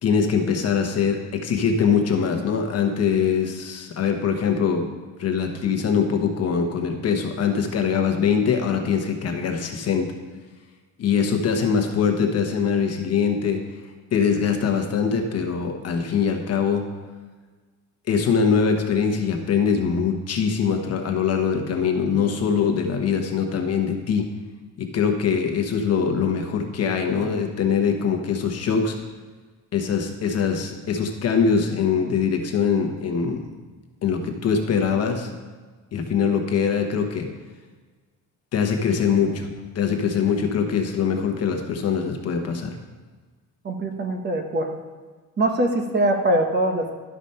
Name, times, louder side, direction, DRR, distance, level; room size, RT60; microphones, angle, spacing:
voice 1, 0.0-4.9 5.2-10.1 11.0-13.6 14.1-16.9 18.1-24.3 24.8-28.9 29.7-33.4 34.0-35.3 35.9-37.3 38.5-39.5 39.7-42.8, left 6 dB, 50° left, 4 dB, 1.1 m, -23 dB
voice 2, 43.6-44.8 45.4-47.0, right 1 dB, 30° right, 4 dB, 0.9 m, -22 dB
12.0 x 5.0 x 5.5 m, 1.4 s
cardioid pair, 165°, 33 cm